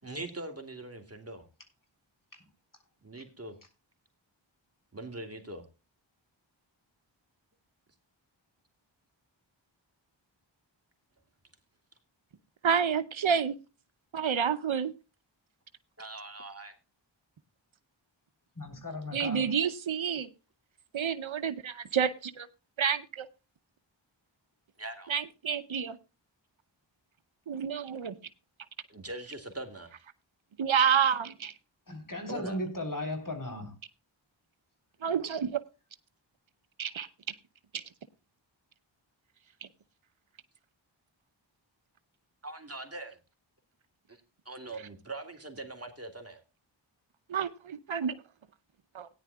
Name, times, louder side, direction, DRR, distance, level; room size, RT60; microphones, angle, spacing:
voice 1, 0.0-1.5 3.0-3.6 4.9-5.7 16.0-16.7 24.8-25.1 28.9-29.9 32.3-32.6 42.4-43.2 44.1-44.2 44.4-46.4, right 2 dB, 30° right, 2.7 m, -42 dB
voice 2, 12.6-13.6 14.1-14.9 19.1-20.3 20.9-22.5 22.8-23.3 25.1-26.0 27.5-28.2 30.6-31.5 35.0-35.6 36.8-37.1 37.7-37.8 39.6-39.7 47.3-48.2 48.9-49.1, right 7 dB, 75° right, 0.8 m, -29 dB
voice 3, 18.6-19.5 31.9-33.7, left 1 dB, 40° left, 3.7 m, -36 dB
18.0 x 10.0 x 2.3 m
wide cardioid pair, 60°, 47 cm